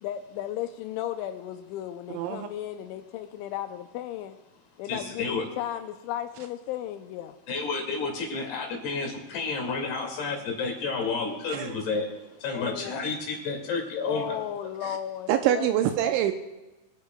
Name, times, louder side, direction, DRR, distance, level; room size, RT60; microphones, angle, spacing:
voice 1, 0.0-4.4 4.8-7.4 12.5-13.0 14.0-15.9, left 11 dB, 85° left, 7 dB, 2.8 m, -35 dB
voice 2, 2.1-2.5 11.5-11.8 15.3-16.3, right 11 dB, 85° right, 7 dB, 2.8 m, -25 dB
voice 3, 4.9-5.4 7.5-12.1 12.4-14.4, left 4 dB, 60° left, 1 dB, 4.0 m, -30 dB
24.5 x 9.8 x 2.3 m, 1.1 s
omnidirectional pair, 5.7 m